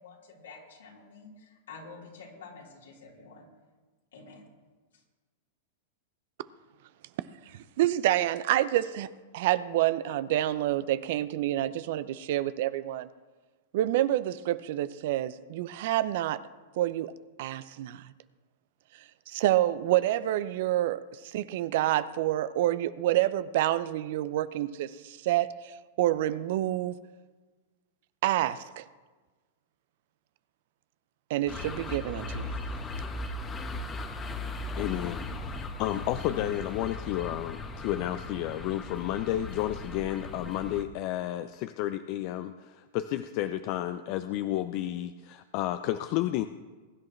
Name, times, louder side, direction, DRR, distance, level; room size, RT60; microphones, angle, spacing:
voice 1, 0.0-3.5 4.1-4.5, left 4 dB, 80° left, -4 dB, 4.1 m, -49 dB
voice 2, 7.5-9.1 9.3-13.1 13.7-16.4 16.8-17.1 17.4-18.1 19.3-26.9 28.2-28.8 31.3-32.6, right 14 dB, 60° right, 15 dB, 0.6 m, -28 dB
sound 1, 31.5-40.8, left 2 dB, 20° left, 1.2 m, -37 dB
voice 3, 34.8-46.4, left 13 dB, 50° left, 10 dB, 0.5 m, -32 dB
22.0 x 10.5 x 3.3 m, 1.3 s
hypercardioid pair, 105°, 0 cm